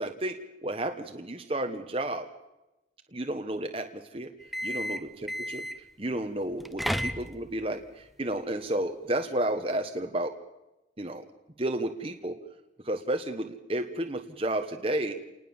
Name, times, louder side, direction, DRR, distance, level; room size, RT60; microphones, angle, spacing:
voice 1, 0.0-2.3 3.1-4.3 4.6-5.6 6.0-10.3 11.0-11.2 11.6-12.4 12.8-15.1, right 1 dB, 30° right, 5 dB, 1.5 m, -32 dB
sound 1, 4.4-5.9 6.5-7.6, equal, ahead, 0.9 m, -33 dB
29.0 x 19.5 x 7.3 m, 0.98 s
head